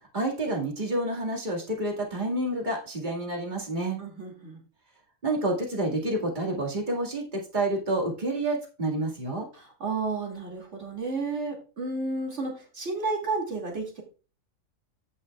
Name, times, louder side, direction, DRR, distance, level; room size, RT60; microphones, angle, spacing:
voice 1, 0.1-4.0 5.2-9.5, right 1 dB, 35° right, 0 dB, 2.2 m, -29 dB
voice 2, 4.0-4.6 9.5-14.0, right 3 dB, 55° right, 0 dB, 2.7 m, -32 dB
16.0 x 5.6 x 2.4 m, 0.35 s
omnidirectional pair, 1.4 m